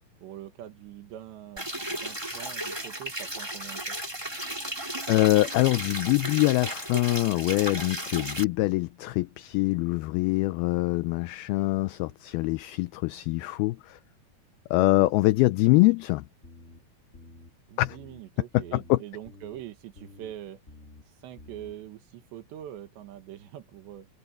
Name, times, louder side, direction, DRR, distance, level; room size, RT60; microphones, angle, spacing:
voice 1, 0.2-4.0 14.8-15.1 17.7-20.6 21.2-24.1, right 12 dB, 90° right, 3.9 m, -43 dB
sound 1, 1.6-8.4, right 1 dB, 5° right, 2.6 m, -34 dB
voice 2, 5.1-14.0 14.7-16.3 17.8-18.0 18.7-19.0, left 20 dB, 80° left, 2.3 m, -24 dB
sound 2, 16.4-16.8 17.1-17.5 17.8-18.2 18.5-18.9 19.2-19.6 20.0-20.3 20.7-21.0 21.4-21.7, left 2 dB, 20° left, 2.2 m, -49 dB
omnidirectional pair, 4.9 m